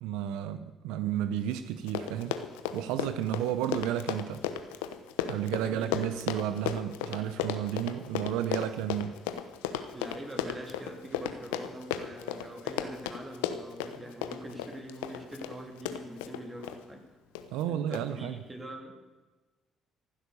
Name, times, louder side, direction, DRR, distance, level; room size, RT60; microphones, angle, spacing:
voice 1, 0.0-2.3 2.7-4.4 5.3-9.1 17.5-18.4, right 11 dB, 80° right, 11 dB, 0.7 m, -32 dB
Run, 1.5-1.6 1.8-16.8 17.4-17.6 17.9-18.0, left 10 dB, 90° left, 1.0 m, -35 dB
voice 2, 5.6-6.0 9.9-17.0 17.7-19.0, right 1 dB, 25° right, 2 dB, 3.4 m, -44 dB
15.0 x 12.0 x 6.8 m, 1.2 s
hypercardioid pair, 60°, 0 cm